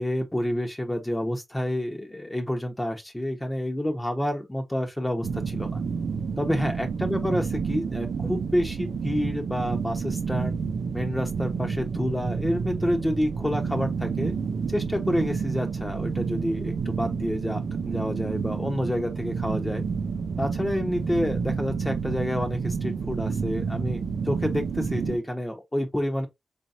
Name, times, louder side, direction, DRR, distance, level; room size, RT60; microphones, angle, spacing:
voice 1, 0.0-5.8 6.4-10.6 10.9-14.3 14.7-19.8 20.4-26.3, equal, 15° left, 0.9 m, -29 dB
sound 1, 5.2-25.2, right 5 dB, 90° right, 0.4 m, -30 dB
4.2 x 3.0 x 2.5 m
cardioid pair, 50°, 0 cm